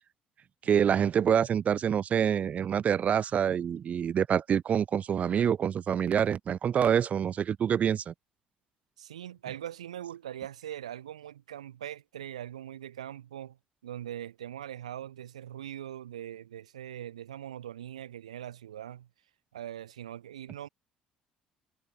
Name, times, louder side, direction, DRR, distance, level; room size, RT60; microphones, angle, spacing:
voice 1, 0.6-8.1, right 8 dB, 45° right, 1.0 m, -26 dB
voice 2, 9.0-13.6 13.8-19.1 19.5-20.7, right 11 dB, 80° right, 2.6 m, -41 dB
figure-of-eight pair, 50°, 3 cm